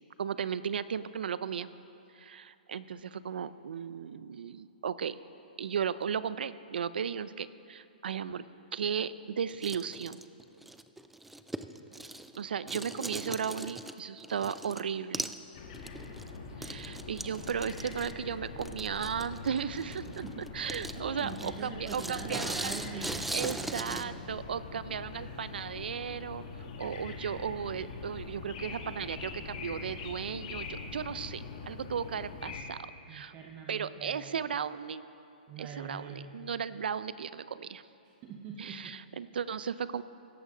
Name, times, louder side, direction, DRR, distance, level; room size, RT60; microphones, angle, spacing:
voice 1, 0.2-1.7 2.1-5.2 5.6-8.4 8.7-10.2 12.4-15.4 16.6-20.1 20.5-23.1 23.3-26.4 26.8-32.8 33.1-33.3 33.7-35.0 35.6-37.8 38.6-40.0, right 7 dB, 80° right, 15 dB, 0.5 m, -35 dB
sound 1, 9.5-12.4 12.7-14.8 15.1-15.4 15.7-24.0, right 1 dB, 5° right, 0.3 m, -40 dB
sound 2, 15.5-32.6, left 4 dB, 50° left, 2.1 m, -43 dB
voice 2, 16.5-17.0 20.2-20.5 20.9-24.2 33.1-34.5 35.5-36.4 38.0-38.9, right 5 dB, 25° right, 2 dB, 1.0 m, -44 dB
17.0 x 13.5 x 3.9 m, 2.7 s
hypercardioid pair, 150°, 5 cm